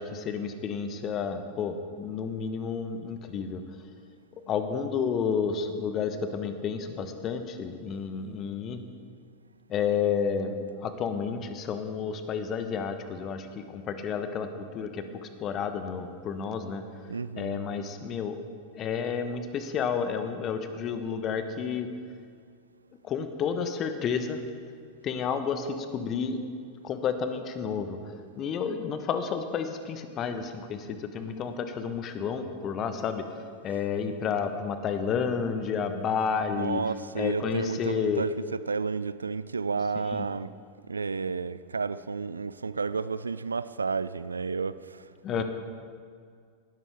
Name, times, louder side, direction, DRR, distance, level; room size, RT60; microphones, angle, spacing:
voice 1, 0.0-3.6 4.5-8.8 9.7-14.5 14.7-16.8 17.4-18.4 18.7-21.9 23.0-24.4 25.0-26.5 26.8-28.0 28.4-33.3 33.6-36.8 37.1-38.2 40.0-40.3 45.2-45.4, left 6 dB, 30° left, 1.1 m, -31 dB
voice 2, 17.1-17.6 33.7-33.8 34.5-34.6 36.5-40.5 40.9-45.4, right 4 dB, 75° right, 0.3 m, -32 dB
18.5 x 12.5 x 3.6 m
figure-of-eight pair, 90°, 0 cm